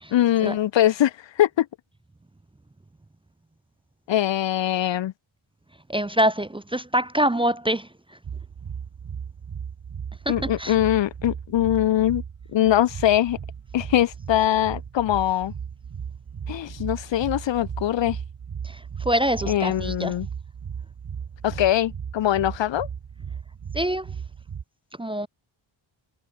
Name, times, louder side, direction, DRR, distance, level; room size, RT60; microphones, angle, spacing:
voice 1, 0.1-1.7 4.1-5.1 10.3-12.2 12.5-13.4 13.7-15.5 16.5-18.2 19.5-20.3 21.4-22.9, left 12 dB, 60° left, 0.6 m, -22 dB
voice 2, 5.9-7.9 10.3-10.7 18.6-20.1 23.7-24.1 25.0-25.3, right 1 dB, 10° right, 0.6 m, -25 dB
sound 1, 8.2-24.6, right 7 dB, 45° right, 1.8 m, -36 dB
wide cardioid pair, 150°, 49 cm